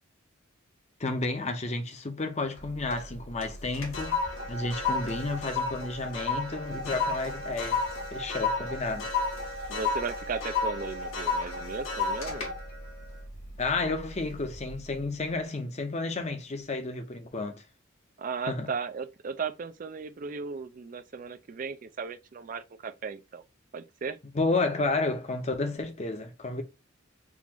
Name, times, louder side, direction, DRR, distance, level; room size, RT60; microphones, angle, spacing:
voice 1, 1.0-4.2 4.5-7.8 8.1-9.1 13.6-17.6 18.5-18.7 24.3-26.6, left 3 dB, 30° left, 0.6 m, -31 dB
sound 1, 2.6-3.1 3.4-14.0 14.4-14.7, left 4 dB, 75° left, 1.3 m, -32 dB
voice 2, 9.7-12.5 18.2-23.4 23.7-24.2, right 5 dB, 40° right, 0.4 m, -36 dB
3.8 x 2.5 x 2.9 m
head